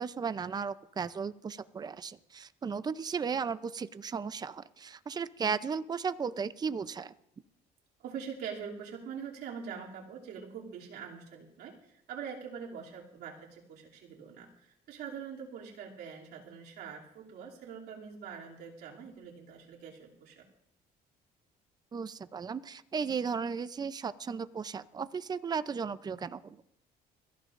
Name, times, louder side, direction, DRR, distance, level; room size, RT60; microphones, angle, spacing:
voice 1, 0.0-7.1 21.9-26.6, right 6 dB, 25° right, 14 dB, 0.6 m, -35 dB
voice 2, 8.0-20.5, right 7 dB, 80° right, -4 dB, 2.9 m, -44 dB
23.0 x 14.5 x 2.6 m, 0.80 s
cardioid pair, 110°, 17 cm